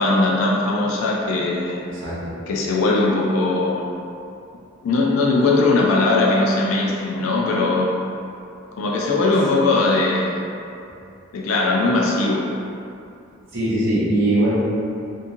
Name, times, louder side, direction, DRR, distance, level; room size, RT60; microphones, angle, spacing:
voice 1, 0.0-1.8 2.5-3.9 4.8-8.0 8.8-10.4 11.3-12.5, left 2 dB, 80° left, -2 dB, 0.4 m, -19 dB
voice 2, 1.9-2.3 13.5-14.5, right 1 dB, 70° right, -9 dB, 0.9 m, -21 dB
2.9 x 2.4 x 2.5 m, 2.5 s
head